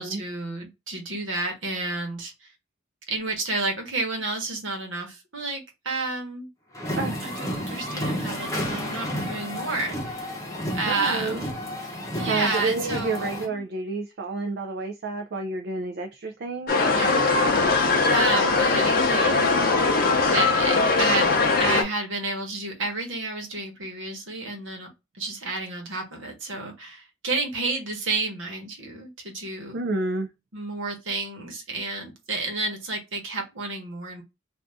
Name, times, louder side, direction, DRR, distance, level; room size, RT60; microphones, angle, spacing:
voice 1, 0.0-2.5 3.1-6.5 7.2-10.3 10.7-11.5 12.1-13.6 16.9-19.5 20.3-24.9 25.2-29.8 30.5-34.2, right 3 dB, 70° right, 1.1 m, -31 dB
sound 1, 6.7-13.4, equal, 15° left, 0.9 m, -31 dB
voice 2, 10.9-11.4 12.2-16.9 29.7-30.3, right 3 dB, 50° right, 0.4 m, -30 dB
sound 2, 16.7-21.8, left 3 dB, 45° left, 0.6 m, -21 dB
2.6 x 2.5 x 3.3 m
head